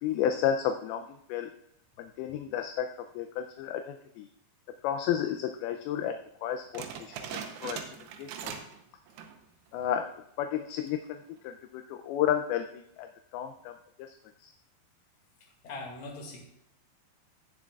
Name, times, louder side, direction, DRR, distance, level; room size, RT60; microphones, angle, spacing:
voice 1, 0.0-1.5 2.0-4.3 4.8-7.8 8.2-8.5 9.7-13.1 13.3-13.7 14.0-14.1 14.4-14.5, left 9 dB, 80° left, 6 dB, 2.3 m, -32 dB
sound 1, 6.7-8.8 9.1-9.4 9.9-10.0 10.7-11.1, right 7 dB, 80° right, 2.8 m, -40 dB
voice 2, 15.6-16.4, left 2 dB, 50° left, -1 dB, 3.0 m, -40 dB
16.5 x 7.2 x 2.4 m, 0.77 s
omnidirectional pair, 4.6 m